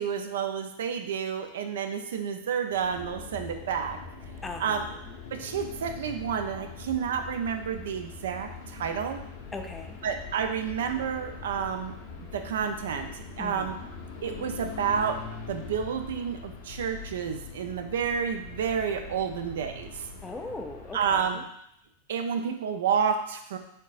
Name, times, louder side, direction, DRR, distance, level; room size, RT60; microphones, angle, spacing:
voice 1, 0.0-4.0 4.6-4.9 5.3-9.2 10.0-13.8 14.2-15.2 15.5-20.0 20.9-21.4 22.1-23.6, right 7 dB, 60° right, 6 dB, 0.4 m, -30 dB
sound 1, 2.7-21.4, left 5 dB, 45° left, 0.8 m, -43 dB
voice 2, 4.4-5.0 9.5-10.0 13.4-13.8 20.2-21.4, left 2 dB, 10° left, 5 dB, 0.4 m, -39 dB
4.3 x 3.9 x 2.4 m, 0.76 s
figure-of-eight pair, 90°, 0 cm